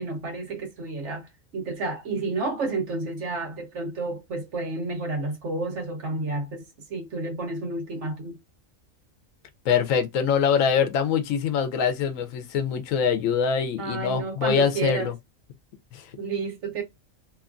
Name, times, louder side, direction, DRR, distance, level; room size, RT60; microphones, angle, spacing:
voice 1, 0.0-6.6 6.9-8.4 13.8-15.1 16.2-16.8, right 3 dB, 65° right, 1.2 m, -30 dB
voice 2, 9.7-15.1 15.9-16.1, left 7 dB, 85° left, 1.0 m, -24 dB
2.9 x 2.3 x 2.4 m
omnidirectional pair, 1.4 m